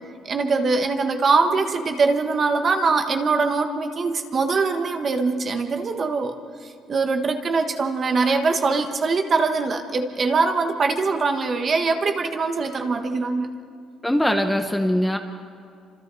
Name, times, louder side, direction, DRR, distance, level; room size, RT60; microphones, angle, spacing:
voice 1, 0.2-6.3 6.9-13.6, right 4 dB, 35° right, 6 dB, 1.5 m, -22 dB
voice 2, 14.0-15.2, equal, 5° left, 5 dB, 1.0 m, -21 dB
29.0 x 26.5 x 4.2 m, 2.4 s
cardioid pair, 145°, 0 cm